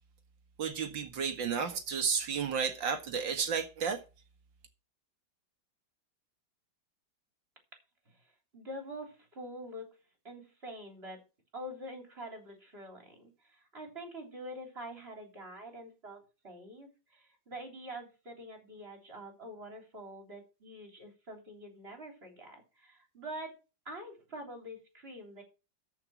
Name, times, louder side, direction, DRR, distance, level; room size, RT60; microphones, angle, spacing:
voice 1, 0.6-4.0, right 6 dB, 85° right, 2.4 m, -32 dB
voice 2, 8.1-10.0 10.2-11.2 11.5-23.6 23.9-25.4, right 1 dB, 30° right, 3.8 m, -46 dB
14.0 x 5.8 x 6.1 m
omnidirectional pair, 2.0 m